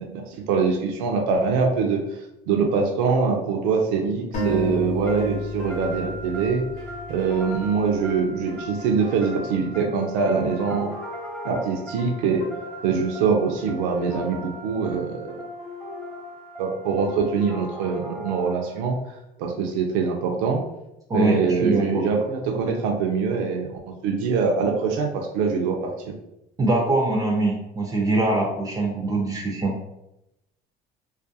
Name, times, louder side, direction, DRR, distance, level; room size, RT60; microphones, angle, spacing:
voice 1, 0.0-2.0 2.5-6.7 7.1-10.9 11.4-12.5 12.8-15.3 16.6-19.0 19.4-20.6 21.1-25.8 26.0-26.2, right 5 dB, 90° right, 2 dB, 0.4 m, -23 dB
sound 1, 4.3-8.0, left 1 dB, 50° left, 0.8 m, -31 dB
sound 2, 5.1-18.9, equal, 5° left, 0.7 m, -38 dB
voice 2, 21.1-22.0 26.6-29.7, right 2 dB, 20° right, 0 dB, 0.4 m, -23 dB
2.3 x 2.2 x 2.6 m, 0.86 s
supercardioid pair, 105°, 17 cm